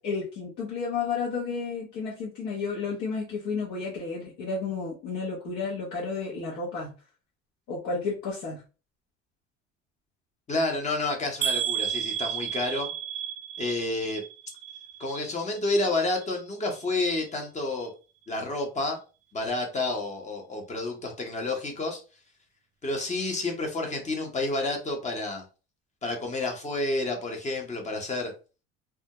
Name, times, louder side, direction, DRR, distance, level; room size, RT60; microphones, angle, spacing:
voice 1, 0.0-6.9 7.7-8.6, left 4 dB, 65° left, -4 dB, 0.8 m, -32 dB
voice 2, 10.5-12.9 13.6-14.2 15.0-17.9 18.3-19.0 19.3-22.0 22.8-25.4 26.0-28.3, left 2 dB, 25° left, 2 dB, 0.8 m, -29 dB
sound 1, 11.4-15.4 15.7-16.3 16.8-16.9 17.2-17.3, right 9 dB, 50° right, 0.4 m, -32 dB
2.3 x 2.0 x 2.8 m, 0.33 s
supercardioid pair, 105°, 30 cm